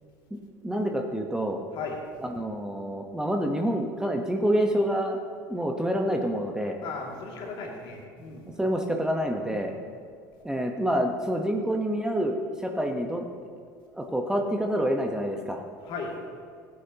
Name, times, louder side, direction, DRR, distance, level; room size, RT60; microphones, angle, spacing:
voice 1, 0.6-1.6 2.3-5.2 5.5-6.8 8.6-9.7 10.4-13.3 13.9-15.6, equal, 5° right, 3 dB, 1.1 m, -27 dB
voice 2, 6.8-8.5 9.5-9.7 15.9-16.2, left 4 dB, 55° left, 0 dB, 2.5 m, -36 dB
16.0 x 9.5 x 3.0 m, 2.1 s
hypercardioid pair, 70°, 10 cm